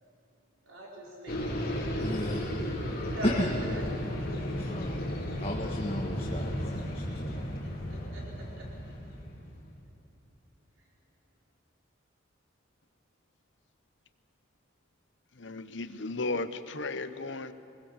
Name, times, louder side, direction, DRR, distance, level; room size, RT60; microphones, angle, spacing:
voice 1, 0.6-2.1 3.1-3.8 7.9-8.7, right 1 dB, 90° right, -3 dB, 4.9 m, -41 dB
sound 1, 1.3-9.6, equal, 50° left, 4.2 m, -34 dB
voice 2, 2.0-2.5 3.2-3.5 4.5-7.6, left 1 dB, 30° left, 0 dB, 1.5 m, -34 dB
voice 3, 15.3-17.5, left 3 dB, 65° left, 11 dB, 1.0 m, -35 dB
23.5 x 21.0 x 7.5 m, 2.7 s
head